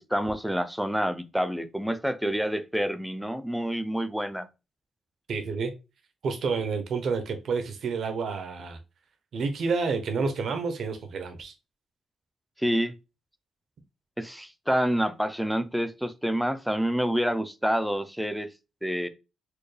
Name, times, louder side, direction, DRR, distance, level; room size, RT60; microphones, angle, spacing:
voice 1, 0.1-4.5 12.6-12.9 14.2-18.5 18.8-19.1, equal, ahead, 0.3 m, -28 dB
voice 2, 5.3-5.7 6.2-8.8 9.3-11.5, right 4 dB, 55° right, 0.6 m, -29 dB
4.4 x 2.2 x 3.2 m
wide cardioid pair, 155°, 0 cm